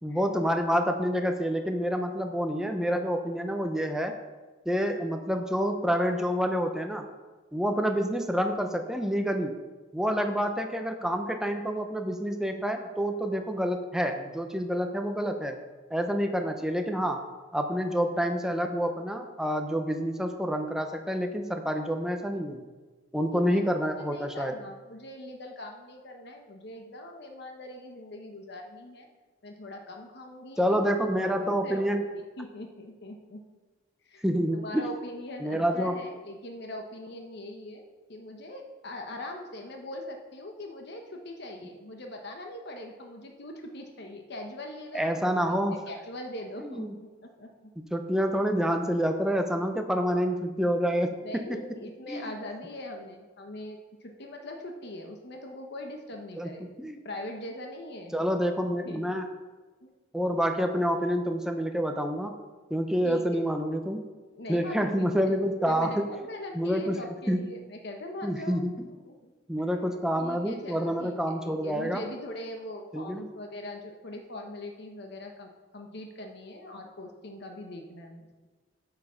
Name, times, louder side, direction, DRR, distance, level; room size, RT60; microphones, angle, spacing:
voice 1, 0.0-4.2 4.7-7.1 7.5-9.6 9.9-15.6 15.9-17.2 17.5-22.6 23.1-24.6 30.6-32.1 34.2-34.9 35.4-36.0 44.9-45.8 46.6-47.0 47.9-51.6 52.1-52.3 56.4-56.5 56.8-57.0 58.1-59.3 60.1-62.3 62.7-64.0 64.5-66.1 66.5-67.0 67.3-67.5 68.2-68.7 69.5-72.0 72.9-73.3, equal, 5° right, 5 dB, 0.7 m, -28 dB
voice 2, 23.3-23.6 24.0-29.1 29.4-30.8 31.4-32.0 32.4-33.4 34.0-34.2 34.5-37.8 38.1-45.6 45.9-47.1 47.4-47.5 51.2-56.6 57.0-58.3 58.8-59.2 59.8-59.9 63.0-63.4 64.3-65.3 65.7-68.6 69.0-69.3 70.2-71.2 71.4-78.3, left 1 dB, 55° left, 3 dB, 1.1 m, -41 dB
8.3 x 7.1 x 5.6 m, 1.3 s
head